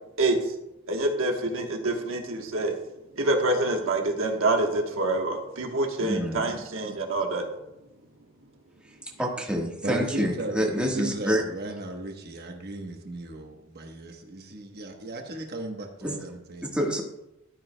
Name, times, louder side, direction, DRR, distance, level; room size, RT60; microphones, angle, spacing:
voice 1, 0.9-2.7 3.2-7.5, right 2 dB, 70° right, 3 dB, 1.2 m, -26 dB
voice 2, 6.0-6.6 9.2-11.4 16.0-16.2 16.7-17.0, equal, 5° right, -1 dB, 1.4 m, -27 dB
voice 3, 9.8-16.8, right 1 dB, 50° right, 3 dB, 1.1 m, -36 dB
12.5 x 9.4 x 2.2 m, 0.90 s
head